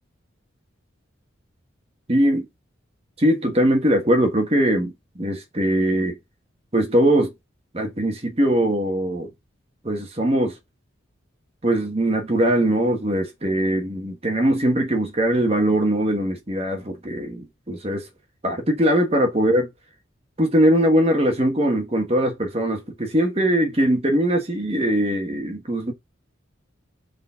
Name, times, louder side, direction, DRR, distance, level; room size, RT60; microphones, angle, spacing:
voice 1, 2.1-2.4 3.2-6.2 6.7-7.3 7.7-9.3 9.8-10.5 11.6-18.1 18.4-19.7 20.4-25.9, right 1 dB, 30° right, 1.4 m, -21 dB
5.0 x 4.1 x 5.5 m
head